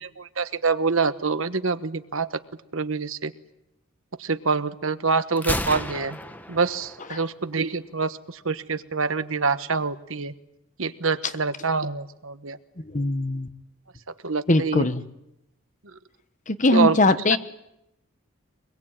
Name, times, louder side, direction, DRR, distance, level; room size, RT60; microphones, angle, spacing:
voice 1, 0.0-2.3 2.7-3.3 4.2-6.2 6.5-10.3 10.8-12.6 14.2-14.9 16.7-17.0, right 4 dB, 70° right, 12 dB, 1.2 m, -26 dB
Gunshot gunfire, 5.4-7.3, left 1 dB, 10° left, 1.3 m, -32 dB
voice 2, 12.9-13.5 14.5-15.0 16.5-17.4, left 2 dB, 35° left, 11 dB, 1.2 m, -21 dB
24.5 x 21.5 x 9.0 m, 0.83 s
head